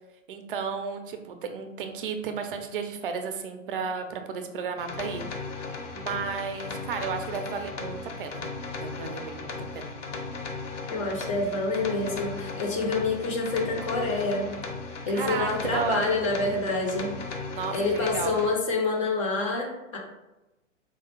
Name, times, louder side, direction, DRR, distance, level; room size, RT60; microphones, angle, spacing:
voice 1, 0.3-5.3 6.0-8.4 8.8-10.0 15.1-16.1 17.5-18.4, right 5 dB, 45° right, 6 dB, 0.5 m, -33 dB
sound 1, 4.8-18.5, left 3 dB, 65° left, 0.7 m, -36 dB
voice 2, 10.9-14.5 15.1-17.1 17.7-20.0, left 3 dB, 25° left, 0 dB, 0.4 m, -27 dB
4.2 x 2.3 x 3.0 m, 1.0 s
figure-of-eight pair, 105°, 39 cm